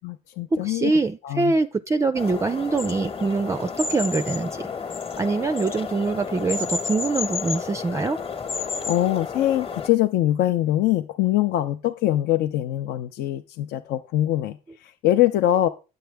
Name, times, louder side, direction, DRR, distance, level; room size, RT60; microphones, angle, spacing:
voice 1, 0.0-1.0 1.2-1.5 8.9-15.7, left 13 dB, 75° left, 8 dB, 0.6 m, -23 dB
voice 2, 0.6-4.7 5.2-8.2, right 3 dB, 15° right, 11 dB, 0.3 m, -24 dB
sound 1, 2.1-9.9, left 5 dB, 30° left, 1.0 m, -31 dB
9.1 x 7.7 x 3.4 m, 0.30 s
cardioid pair, 110°, 17 cm